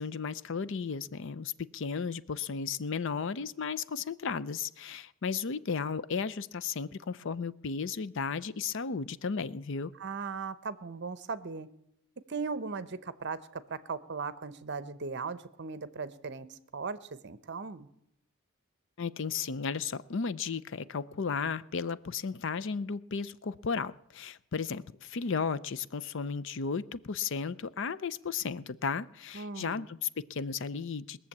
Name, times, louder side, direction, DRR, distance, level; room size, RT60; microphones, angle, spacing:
voice 1, 0.0-9.9 19.0-31.3, left 5 dB, 60° left, 17 dB, 0.5 m, -34 dB
voice 2, 9.9-11.7 12.3-17.9 29.3-29.9, right 4 dB, 55° right, 15 dB, 0.8 m, -38 dB
20.5 x 7.1 x 8.5 m, 0.76 s
head